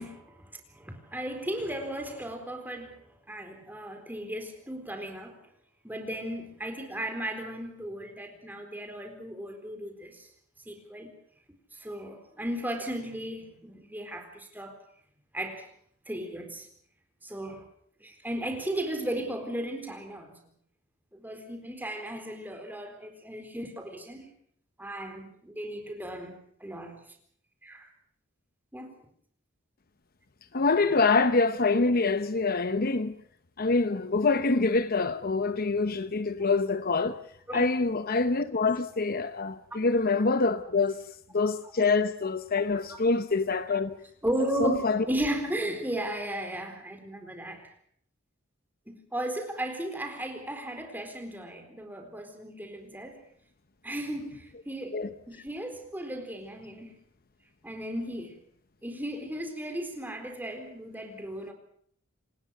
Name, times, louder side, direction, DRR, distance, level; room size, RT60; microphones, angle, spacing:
voice 1, 0.0-5.4 5.8-10.3 10.7-11.1 11.7-14.8 15.3-15.7 16.1-16.7 17.2-17.7 18.0-20.4 21.1-24.3 24.8-27.0 27.6-27.9 28.7-28.9 37.5-37.7 42.9-43.0 44.2-47.7 48.9-53.2 53.8-55.0 55.3-57.0 57.6-58.4 58.8-61.5, right 1 dB, 10° right, 4.1 m, -35 dB
voice 2, 30.5-33.1 33.6-37.2 37.5-41.0 41.3-44.0 44.6-45.0 54.9-55.1, left 3 dB, 45° left, 0.9 m, -25 dB
28.0 x 19.5 x 6.5 m
head